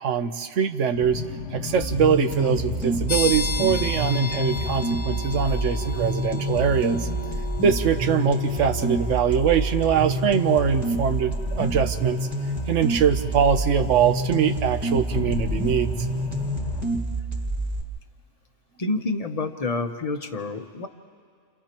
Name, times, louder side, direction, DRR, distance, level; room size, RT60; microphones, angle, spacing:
voice 1, 0.0-1.2 1.5-7.1 7.6-15.9, right 7 dB, 70° right, 8 dB, 1.1 m, -23 dB
sound 1, 1.0-16.9, left 6 dB, 70° left, 1.0 m, -37 dB
sound 2, 1.8-17.8, right 1 dB, 10° right, 2.6 m, -28 dB
sound 3, 3.1-15.6, left 4 dB, 85° left, 1.4 m, -37 dB
voice 2, 18.8-20.9, left 3 dB, 35° left, 7 dB, 0.8 m, -28 dB
29.5 x 29.5 x 3.0 m, 2.1 s
omnidirectional pair, 1.3 m